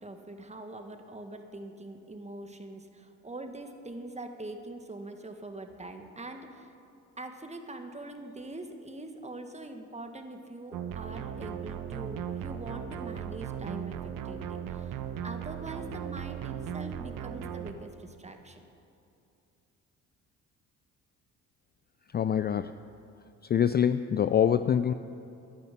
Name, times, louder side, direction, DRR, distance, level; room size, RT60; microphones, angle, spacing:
voice 1, 0.0-6.7 7.2-14.0 14.2-18.6, right 2 dB, 20° right, 5 dB, 1.7 m, -43 dB
sound 1, 10.7-17.7, right 9 dB, 65° right, 1.0 m, -37 dB
voice 2, 22.1-22.8 23.5-24.9, left 8 dB, 30° left, 12 dB, 0.4 m, -25 dB
10.5 x 9.6 x 10.0 m, 2.6 s
hypercardioid pair, 65°, 36 cm